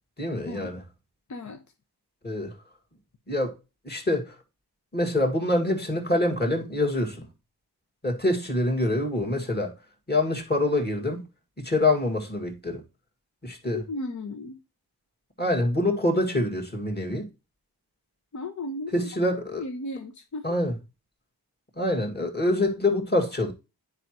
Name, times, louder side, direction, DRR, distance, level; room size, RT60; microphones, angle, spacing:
voice 1, 0.2-0.8 2.2-2.5 3.3-3.5 3.8-4.4 4.9-7.3 8.0-9.7 10.1-11.2 11.6-12.8 13.4-13.8 15.4-17.3 18.9-19.6 20.4-20.7 21.8-23.5, left 1 dB, 25° left, 2.0 m, -25 dB
voice 2, 1.3-1.6 13.7-14.6 18.3-19.1 19.5-20.6, left 2 dB, 45° left, 0.9 m, -35 dB
9.8 x 5.0 x 3.0 m
wide cardioid pair, 90°, 40 cm